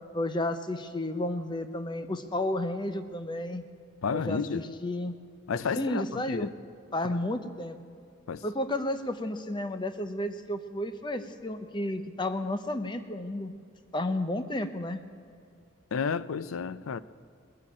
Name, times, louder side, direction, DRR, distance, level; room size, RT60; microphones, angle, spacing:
voice 1, 0.1-3.6 4.1-5.1 5.7-6.5 6.9-7.8 8.4-13.5 13.9-15.0, left 1 dB, 20° left, 0.7 m, -32 dB
voice 2, 4.0-4.6 5.5-6.5 8.3-8.4 15.9-17.0, left 5 dB, 85° left, 0.5 m, -31 dB
20.0 x 7.3 x 8.6 m
head